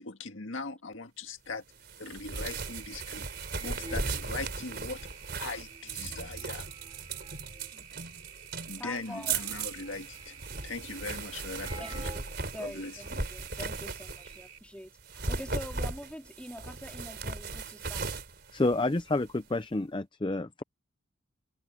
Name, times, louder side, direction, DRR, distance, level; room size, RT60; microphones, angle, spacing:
voice 1, 0.0-1.6 2.0-3.3 3.6-5.1 5.4-6.7 8.7-10.4 10.6-12.1 12.4-13.2, left 3 dB, 70° left, 1.8 m, -40 dB
sound 1, 1.8-14.5 15.0-19.3, right 4 dB, 50° right, 4.1 m, -37 dB
sound 2, 2.3-14.6, right 7 dB, 90° right, 4.0 m, -52 dB
sound 3, 3.5-7.7 8.5-8.6 8.8-12.4 12.7-12.8 13.4-13.8 14.0-14.5 15.8-15.9 16.3-17.9 18.1-18.2 18.5-19.2, right 1 dB, 20° right, 6.9 m, -51 dB
voice 2, 8.8-9.4 11.8-12.2 12.5-18.2, equal, 5° left, 3.6 m, -44 dB
voice 3, 18.5-20.6, left 2 dB, 25° left, 0.5 m, -29 dB
head